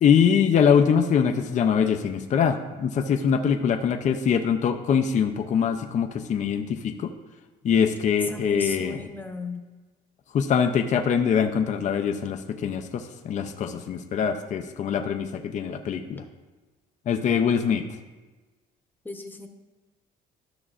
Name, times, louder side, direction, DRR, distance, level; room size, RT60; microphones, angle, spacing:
voice 1, 0.0-7.1 7.6-9.0 10.3-16.2 17.1-17.8, left 7 dB, 45° left, 5 dB, 0.6 m, -23 dB
voice 2, 8.3-9.6 19.0-19.5, left 3 dB, 10° left, 4 dB, 0.9 m, -36 dB
13.0 x 5.9 x 2.5 m, 1.3 s
cardioid pair, 110°, 17 cm